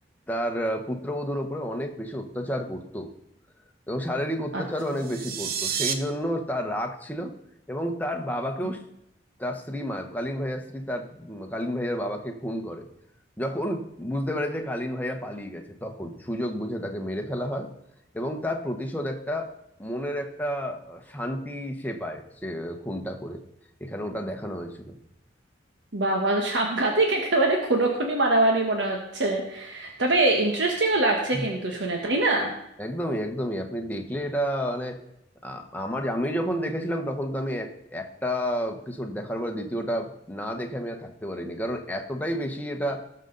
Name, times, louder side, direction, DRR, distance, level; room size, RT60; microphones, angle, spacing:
voice 1, 0.3-3.1 3.9-7.4 7.7-8.8 9.4-12.9 13.4-17.7 18.1-19.5 19.8-23.4 23.8-25.0 31.3-31.4 32.8-35.0 35.4-43.0, equal, 10° left, 3 dB, 1.0 m, -30 dB
sound 1, 4.9-5.9, right 8 dB, 50° right, 0.8 m, -29 dB
voice 2, 25.9-32.5, right 2 dB, 75° right, 1 dB, 1.3 m, -24 dB
18.0 x 6.6 x 3.9 m, 0.80 s
head